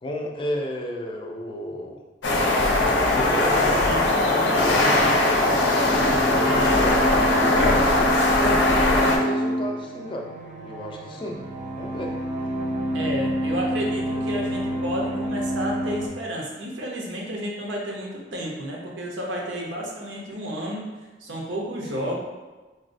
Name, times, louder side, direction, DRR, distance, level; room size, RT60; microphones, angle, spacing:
voice 1, 0.0-2.0 2.8-3.8 4.5-5.2 5.9-10.3 10.6-11.4 11.8-12.1 21.9-22.2, equal, 30° left, 0 dB, 0.3 m, -32 dB
sound 1, 2.2-9.2, left 2 dB, 80° left, 0.5 m, -20 dB
voice 2, 3.4-4.3 4.7-5.1 6.4-6.9 12.9-20.9 21.2-22.2, equal, 85° right, -1 dB, 0.6 m, -31 dB
sound 2, 4.9-16.1, equal, 45° right, 0.4 m, -28 dB
3.9 x 2.0 x 2.5 m, 1.2 s
head